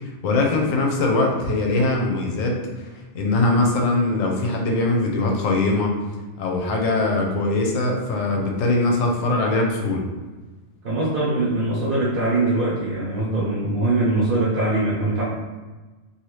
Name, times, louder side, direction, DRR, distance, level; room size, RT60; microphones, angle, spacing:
voice 1, 0.0-2.9 3.1-6.0 6.4-10.0, left 2 dB, 80° left, 1 dB, 1.0 m, -21 dB
voice 2, 10.8-15.2, right 2 dB, 50° right, -7 dB, 0.8 m, -22 dB
2.8 x 2.6 x 3.1 m, 1.2 s
omnidirectional pair, 1.4 m